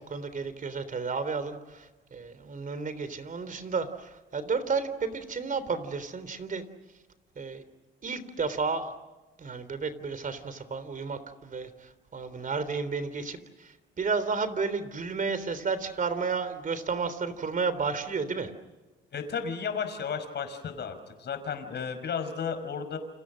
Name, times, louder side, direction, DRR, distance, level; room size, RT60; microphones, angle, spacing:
voice 1, 0.0-6.6 7.4-7.6 8.0-8.9 9.4-18.5, right 4 dB, 40° right, 13 dB, 3.5 m, -32 dB
voice 2, 19.1-23.0, left 6 dB, 60° left, 8 dB, 5.3 m, -33 dB
29.5 x 28.0 x 6.5 m, 1.2 s
cardioid pair, 90°, 20 cm